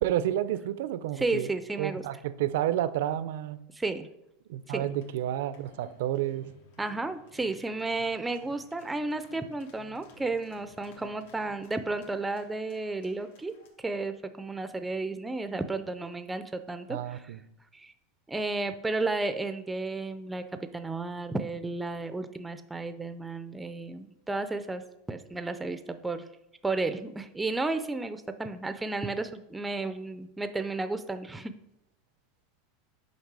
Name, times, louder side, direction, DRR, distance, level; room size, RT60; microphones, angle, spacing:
voice 1, 0.0-3.6 4.5-6.4 16.9-17.4, right 12 dB, 75° right, 14 dB, 0.5 m, -30 dB
voice 2, 1.2-2.1 3.7-4.1 4.7-4.9 6.8-13.5 13.8-17.3 17.7-17.9 18.3-26.2 26.6-31.5, right 3 dB, 10° right, 10 dB, 0.4 m, -33 dB
sound 1, 4.6-13.7, left 1 dB, 80° left, 1.4 m, -56 dB
6.5 x 5.3 x 4.7 m, 0.85 s
supercardioid pair, 150°, 0 cm